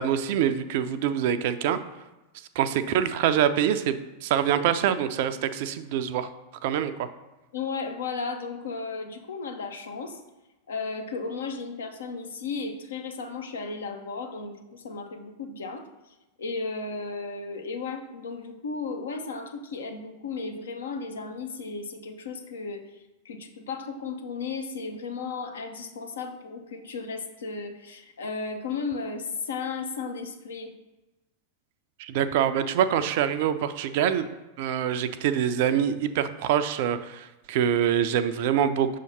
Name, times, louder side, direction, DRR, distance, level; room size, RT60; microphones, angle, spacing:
voice 1, 0.0-1.8 2.6-4.0 4.2-6.3 6.6-7.1 32.0-34.3 34.6-39.0, right 9 dB, 50° right, 11 dB, 0.4 m, -25 dB
voice 2, 7.5-10.2 10.7-15.8 16.4-22.9 23.2-30.7, left 4 dB, 65° left, 5 dB, 0.7 m, -34 dB
6.2 x 2.8 x 5.5 m, 1.0 s
figure-of-eight pair, 90°, 0 cm